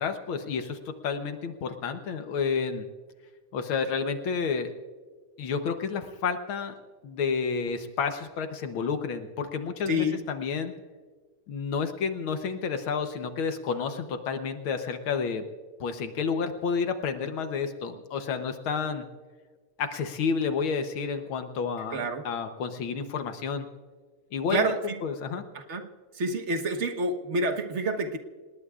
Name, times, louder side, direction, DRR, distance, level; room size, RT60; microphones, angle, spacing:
voice 1, 0.0-2.9 3.5-4.7 5.4-6.7 7.0-10.7 11.5-15.4 15.8-19.1 19.8-22.0 22.3-23.7 24.3-24.7 25.0-25.4, left 5 dB, 75° left, 7 dB, 1.8 m, -30 dB
voice 2, 9.9-10.2 21.9-22.2 24.5-25.0 25.5-25.9 26.1-28.2, right 1 dB, 40° right, 6 dB, 1.4 m, -28 dB
28.0 x 19.5 x 2.4 m, 1.5 s
omnidirectional pair, 2.3 m